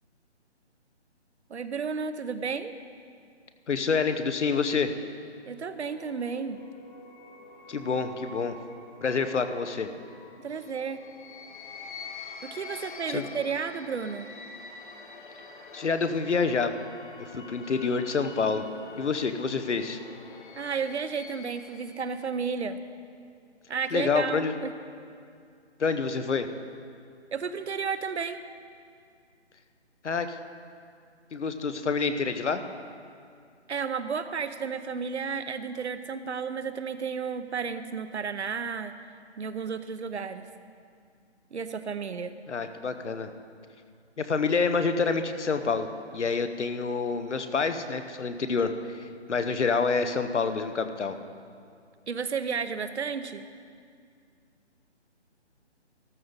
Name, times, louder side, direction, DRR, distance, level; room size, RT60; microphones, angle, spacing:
voice 1, 1.5-2.7 5.5-6.6 10.4-11.0 12.4-14.3 20.5-22.8 23.7-24.7 27.3-28.4 33.7-38.9 39.4-40.4 41.5-42.3 52.1-53.4, right 6 dB, 70° right, 11 dB, 0.8 m, -32 dB
voice 2, 3.7-4.9 7.7-8.6 9.0-9.9 12.7-13.2 15.7-16.7 17.3-18.7 19.0-20.0 23.9-24.5 25.8-26.5 30.0-30.4 31.3-32.6 42.5-43.3 44.2-51.1, left 5 dB, 75° left, 9 dB, 1.0 m, -27 dB
sound 1, 5.4-22.2, left 4 dB, 45° left, 1.2 m, -46 dB
13.5 x 12.5 x 3.9 m, 2.3 s
hypercardioid pair, 165°, 35 cm